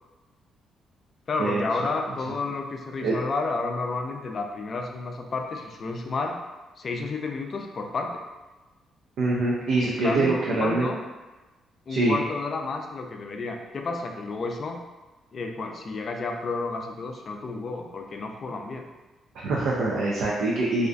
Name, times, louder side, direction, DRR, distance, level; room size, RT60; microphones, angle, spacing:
voice 1, 1.3-6.4 6.8-8.2 9.8-11.0 11.9-14.8 15.3-18.9, left 3 dB, 45° left, 3 dB, 0.3 m, -31 dB
voice 2, 9.2-10.9 11.9-12.2 19.4-20.9, right 2 dB, 80° right, -5 dB, 0.4 m, -24 dB
2.4 x 2.2 x 2.4 m, 1.2 s
cardioid pair, 90°, 0 cm